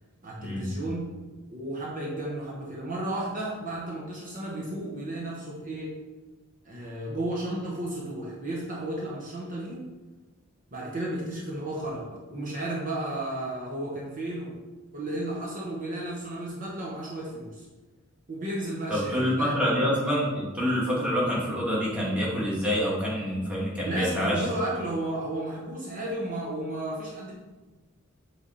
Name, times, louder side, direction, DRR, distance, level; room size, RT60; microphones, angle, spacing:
voice 1, 0.2-1.1 1.5-6.0 6.6-9.8 10.7-14.6 14.9-17.6 18.3-19.5 23.8-27.3, right 1 dB, 40° right, -4 dB, 1.2 m, -33 dB
voice 2, 18.9-24.5, equal, 5° right, -6 dB, 1.8 m, -27 dB
7.9 x 3.6 x 4.2 m, 1.2 s
head